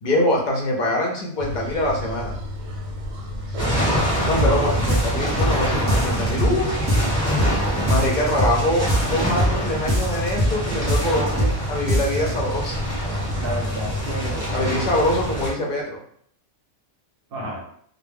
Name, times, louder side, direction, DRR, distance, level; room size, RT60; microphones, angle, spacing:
voice 1, 0.0-2.4 4.2-4.7 5.0-6.8 7.9-12.8 14.5-16.0, left 1 dB, 55° left, -1 dB, 0.5 m, -24 dB
sound 1, 1.4-15.0, left 1 dB, 90° right, 1.0 m, -32 dB
sound 2, 3.6-15.5, equal, 5° left, 1.0 m, -25 dB
sound 3, 4.4-4.6 4.9-5.6 5.9-6.6 6.9-7.6 7.9-8.6 8.9-9.6 9.9-10.6 10.9-11.6 11.9-12.3, equal, 25° right, 0.7 m, -22 dB
voice 2, 4.4-4.8 13.1-14.6 17.3-17.6, right 1 dB, 55° right, -2 dB, 0.8 m, -30 dB
2.2 x 2.1 x 3.3 m, 0.64 s
omnidirectional pair, 1.3 m